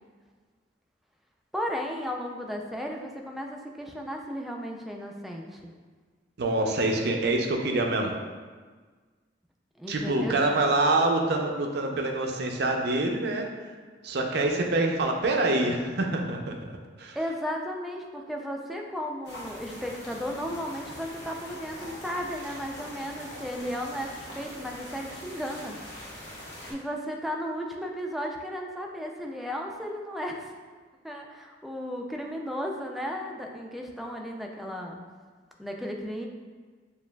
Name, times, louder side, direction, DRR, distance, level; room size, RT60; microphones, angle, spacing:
voice 1, 1.5-5.7 9.8-10.5 17.1-25.8 26.7-30.5 31.0-35.0 35.6-36.3, equal, ahead, 0 dB, 0.3 m, -34 dB
voice 2, 6.4-8.1 9.9-13.5 14.0-16.6 17.0-17.2, right 2 dB, 65° right, 2 dB, 0.5 m, -26 dB
sound 1, 19.2-26.7, left 1 dB, 85° left, 1.0 m, -43 dB
7.1 x 2.4 x 2.2 m, 1.5 s
head